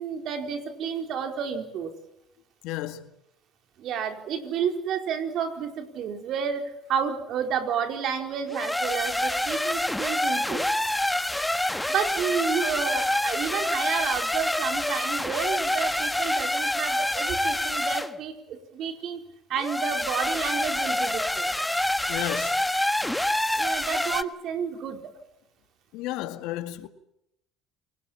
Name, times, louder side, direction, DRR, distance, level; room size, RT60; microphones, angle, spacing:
voice 1, 0.0-1.9 3.8-10.7 11.9-19.2 19.5-21.5 23.5-25.0, right 7 dB, 60° right, 4.6 m, -31 dB
voice 2, 2.6-3.1 22.1-22.6 25.9-26.9, left 15 dB, 75° left, 2.0 m, -32 dB
sound 1, 8.5-18.1 19.6-24.2, left 1 dB, 5° left, 1.5 m, -27 dB
29.0 x 19.0 x 7.6 m
supercardioid pair, 75°, 0 cm